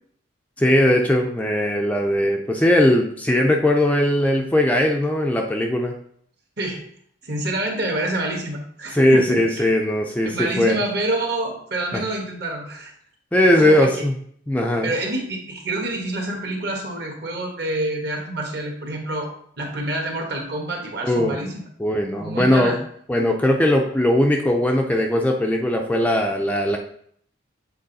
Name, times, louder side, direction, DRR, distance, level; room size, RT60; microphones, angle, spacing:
voice 1, 0.6-6.0 8.9-10.8 11.9-12.0 13.3-14.1 14.5-14.9 21.0-21.4 21.8-22.8 23.1-26.8, left 1 dB, 10° left, 1 dB, 0.4 m, -19 dB
voice 2, 7.2-9.6 10.2-12.9 13.6-14.0 14.8-19.3 19.6-21.6 22.2-22.8, right 1 dB, 55° right, 1 dB, 1.4 m, -27 dB
7.8 x 3.4 x 4.0 m, 0.64 s
head